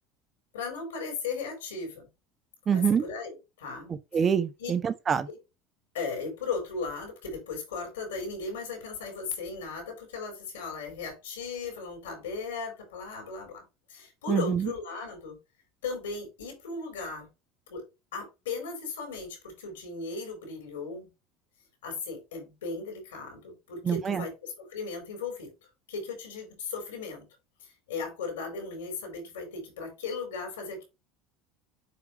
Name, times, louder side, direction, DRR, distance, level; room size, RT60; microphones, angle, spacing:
voice 1, 0.5-2.1 2.7-3.9 4.6-4.7 5.9-15.4 15.8-17.3 17.7-17.8 18.1-21.1 21.8-25.5 25.9-27.3 27.6-30.8, left 4 dB, 85° left, 4.3 m, -37 dB
voice 2, 2.7-3.0 3.9-5.3 14.3-14.7 23.8-24.2, right 7 dB, 35° right, 1.2 m, -26 dB
8.4 x 5.0 x 3.2 m
hypercardioid pair, 75°, 0 cm